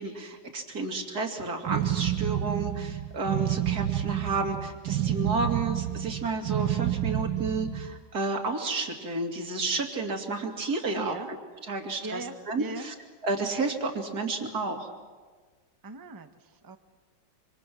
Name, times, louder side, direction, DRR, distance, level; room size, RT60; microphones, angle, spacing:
voice 1, 0.0-11.4 11.7-12.9 13.2-14.9, right 3 dB, 55° right, 3 dB, 2.9 m, -31 dB
sound 1, 1.7-8.0, right 12 dB, 90° right, 1.7 m, -29 dB
voice 2, 10.9-11.3 12.0-12.9 15.8-16.8, right 2 dB, 15° right, 7 dB, 0.7 m, -39 dB
26.5 x 25.5 x 6.2 m, 1.5 s
omnidirectional pair, 2.0 m